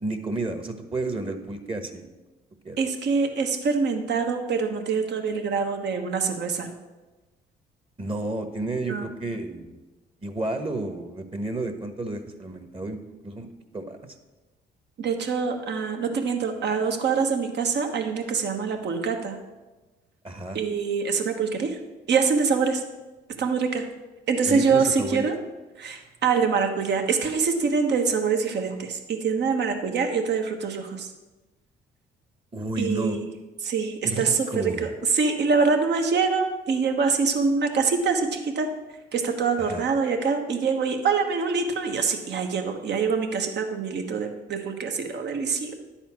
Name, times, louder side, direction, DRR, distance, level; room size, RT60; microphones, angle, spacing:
voice 1, 0.0-2.1 2.6-2.8 8.0-9.8 10.2-13.0 13.2-13.5 13.7-14.0 20.2-20.6 24.5-25.2 32.5-33.2 34.0-34.9 39.6-39.9, right 2 dB, 30° right, 7 dB, 1.2 m, -31 dB
voice 2, 2.8-6.7 8.9-9.1 15.0-19.4 20.5-21.8 22.1-22.8 23.4-23.9 24.3-25.4 25.8-31.1 32.8-33.3 33.6-38.7 39.1-45.7, right 5 dB, 60° right, 5 dB, 1.2 m, -25 dB
10.5 x 4.3 x 7.3 m, 1.2 s
supercardioid pair, 70°, 19 cm